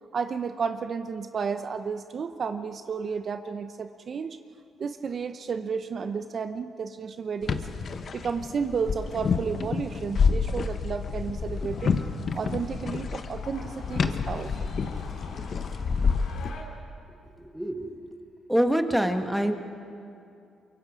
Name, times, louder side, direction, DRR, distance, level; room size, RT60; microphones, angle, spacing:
voice 1, 0.1-4.4 4.8-7.7 8.1-12.0 12.3-14.7, right 5 dB, 50° right, 9 dB, 0.7 m, -32 dB
sound 1, 7.4-16.5, left 5 dB, 50° left, 1.0 m, -29 dB
sound 2, 11.4-16.6, left 4 dB, 80° left, 3.0 m, -46 dB
voice 2, 17.4-18.1 18.5-19.5, equal, 5° right, 6 dB, 1.5 m, -25 dB
24.0 x 23.0 x 5.1 m, 2.5 s
cardioid pair, 90°, 0 cm